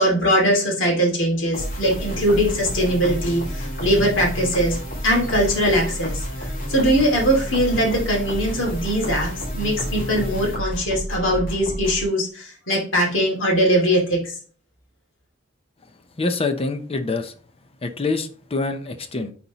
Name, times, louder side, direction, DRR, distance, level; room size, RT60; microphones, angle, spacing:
voice 1, 0.0-4.8 5.0-6.3 6.7-14.3, equal, 90° left, -1 dB, 2.4 m, -21 dB
sound 1, 1.5-12.0, equal, 50° left, 2.2 m, -30 dB
voice 2, 16.2-17.3 17.8-19.3, left 3 dB, 30° left, 8 dB, 0.6 m, -25 dB
9.6 x 4.2 x 3.0 m, 0.43 s
head